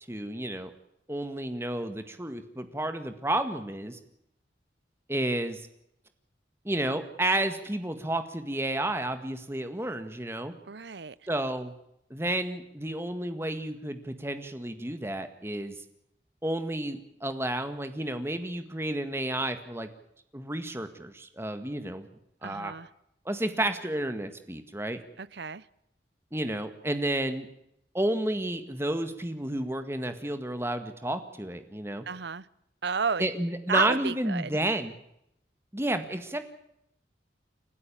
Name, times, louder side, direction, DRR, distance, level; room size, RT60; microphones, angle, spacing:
voice 1, 0.1-0.7 1.1-4.0 5.1-5.7 6.6-10.5 11.3-11.7 12.1-15.8 16.4-19.9 20.3-22.1 22.4-22.7 23.3-25.0 26.3-27.5 27.9-32.1 33.2-35.0 35.7-36.4, right 1 dB, 15° right, 9 dB, 1.8 m, -31 dB
voice 2, 10.7-11.1 22.4-22.9 25.2-25.6 32.1-32.5 32.8-33.2 33.7-34.6, right 5 dB, 65° right, 20 dB, 0.7 m, -31 dB
30.0 x 12.5 x 8.6 m, 0.78 s
head